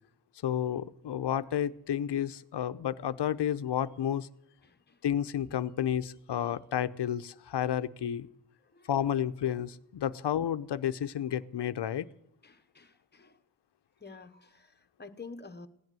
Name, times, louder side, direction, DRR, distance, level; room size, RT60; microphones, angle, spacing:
voice 1, 0.4-4.3 5.0-8.3 8.9-12.1, left 10 dB, 65° left, 14 dB, 0.7 m, -31 dB
voice 2, 4.6-5.0 8.7-8.9 12.4-13.4 14.0-15.7, left 4 dB, 25° left, 9 dB, 1.0 m, -49 dB
16.5 x 11.0 x 7.6 m, 0.78 s
wide cardioid pair, 150°, 45 cm